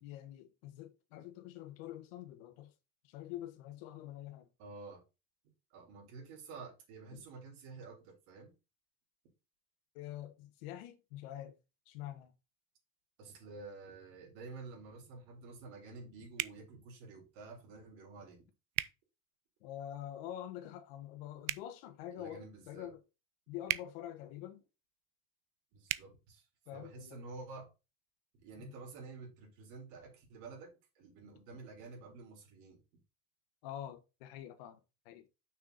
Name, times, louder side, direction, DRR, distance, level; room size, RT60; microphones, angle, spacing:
voice 1, 0.0-2.7 3.0-4.5 7.1-7.2 9.9-11.6 11.9-12.3 19.6-23.0 23.5-24.6 26.7-27.2 28.6-28.7 33.6-34.8 35.0-35.3, left 12 dB, 75° left, 1.3 m, -46 dB
voice 2, 4.6-5.0 5.7-8.5 13.2-18.5 22.2-22.9 25.7-26.5 26.7-27.7 28.4-32.8, right 4 dB, 60° right, 3.9 m, -50 dB
sound 1, 16.4-16.6 18.7-18.9 21.4-21.7 23.6-23.9 25.8-26.0, right 19 dB, 75° right, 0.6 m, -35 dB
6.4 x 6.1 x 4.1 m
cardioid pair, 175°, 30 cm